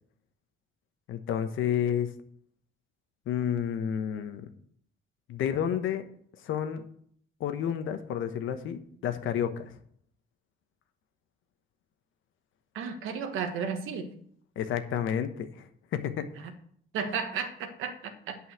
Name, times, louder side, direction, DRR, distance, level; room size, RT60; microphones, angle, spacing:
voice 1, 1.1-2.1 3.3-4.4 5.3-6.0 6.4-6.8 7.4-9.7 14.6-15.5 15.9-16.3, left 9 dB, 85° left, 9 dB, 1.1 m, -30 dB
voice 2, 12.7-14.1 16.9-18.5, right 6 dB, 90° right, 7 dB, 1.3 m, -33 dB
8.7 x 5.6 x 7.6 m, 0.64 s
cardioid pair, 90°, 20 cm